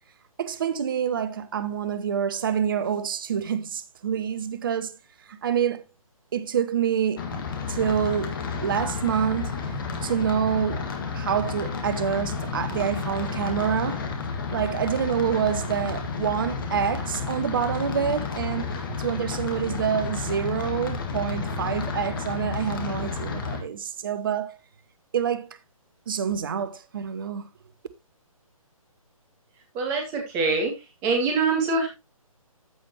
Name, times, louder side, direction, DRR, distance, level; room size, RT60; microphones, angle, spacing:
voice 1, 0.4-5.0 5.3-5.8 6.3-7.3 7.7-9.5 10.0-10.9 11.1-14.1 14.5-24.6 25.1-25.5 26.1-27.5, right 8 dB, 35° right, 0.7 m, -27 dB
sound 1, 7.2-23.6, left 5 dB, 35° left, 1.9 m, -31 dB
voice 2, 29.7-30.7 31.0-31.9, right 4 dB, 15° right, 2.4 m, -24 dB
14.5 x 5.0 x 2.9 m
figure-of-eight pair, 140°, 19 cm